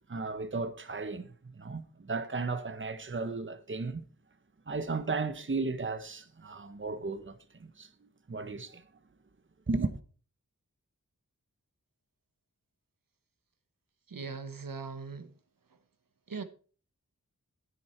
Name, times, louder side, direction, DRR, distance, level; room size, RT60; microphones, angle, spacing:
voice 1, 0.1-4.0 4.7-7.9 8.3-8.8 9.7-9.9, right 3 dB, 35° right, 0.9 m, -35 dB
voice 2, 14.1-15.3 16.3-16.4, right 4 dB, 75° right, 1.0 m, -39 dB
9.5 x 9.3 x 4.4 m
wide cardioid pair, 50°, 34 cm